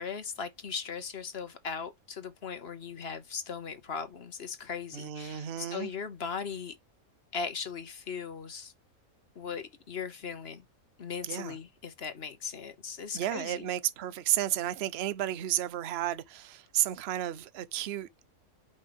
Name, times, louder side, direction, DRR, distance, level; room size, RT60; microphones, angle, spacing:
voice 1, 0.0-6.8 7.3-8.7 9.3-10.6 11.0-13.7, left 6 dB, 45° left, 1.2 m, -38 dB
voice 2, 4.9-5.9 11.2-11.6 13.1-18.1, right 12 dB, 55° right, 0.8 m, -32 dB
5.5 x 5.3 x 5.2 m
omnidirectional pair, 1.5 m